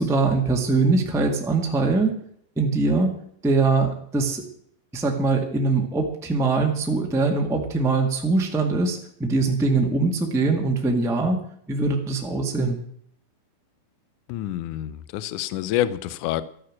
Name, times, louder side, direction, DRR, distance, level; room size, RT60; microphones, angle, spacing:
voice 1, 0.0-2.1 2.6-3.1 3.4-4.4 4.9-11.4 11.7-12.8, right 3 dB, 5° right, 1 dB, 0.5 m, -22 dB
voice 2, 14.3-16.4, left 13 dB, 75° left, 15 dB, 1.9 m, -27 dB
13.5 x 10.0 x 7.4 m, 0.65 s
omnidirectional pair, 4.2 m